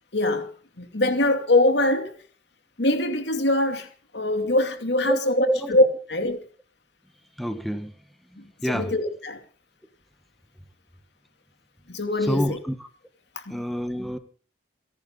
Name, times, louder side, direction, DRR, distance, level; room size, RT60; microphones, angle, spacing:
voice 1, 0.1-2.1 2.8-3.9 4.1-6.4 8.4-9.4 11.9-12.6 13.5-13.6, left 1 dB, 75° left, 2.6 m, -23 dB
voice 2, 5.0-5.7 7.4-7.9 8.6-8.9 12.2-12.9 13.5-14.2, equal, ahead, 1.3 m, -27 dB
29.5 x 11.0 x 3.8 m
head